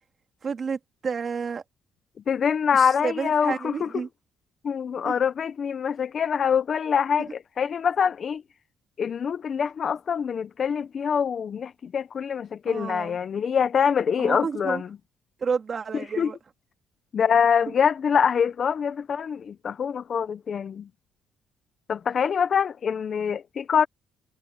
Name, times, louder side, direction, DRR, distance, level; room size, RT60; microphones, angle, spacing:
voice 1, 0.4-1.6 2.7-4.1 5.0-5.1 7.2-7.3 12.7-13.2 14.2-14.8 15.4-16.4, right 5 dB, 35° right, 2.7 m, -30 dB
voice 2, 2.3-4.0 4.6-8.4 9.0-14.9 16.2-16.3 17.1-20.9 21.9-23.9, left 7 dB, 40° left, 0.6 m, -24 dB
cardioid pair, 140°, 0 cm